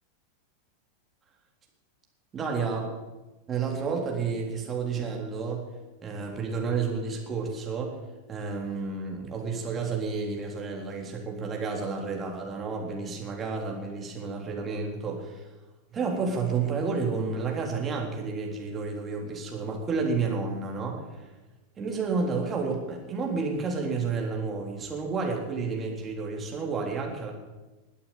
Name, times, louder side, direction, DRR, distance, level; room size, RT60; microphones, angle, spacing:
voice 1, 2.3-2.9 3.5-5.6 6.0-8.0 8.3-15.5 15.9-21.3 21.8-27.3, right 4 dB, 20° right, 0 dB, 3.7 m, -31 dB
21.5 x 8.6 x 7.5 m, 1.1 s
figure-of-eight pair, 90°, 0 cm